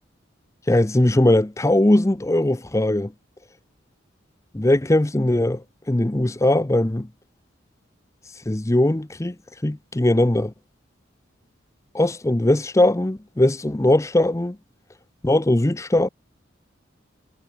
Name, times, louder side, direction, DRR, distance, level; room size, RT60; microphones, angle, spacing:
voice 1, 0.7-3.1 4.5-5.6 5.9-7.1 8.5-9.3 9.6-10.5 11.9-14.6 15.2-16.1, left 1 dB, 15° left, 0.6 m, -20 dB
head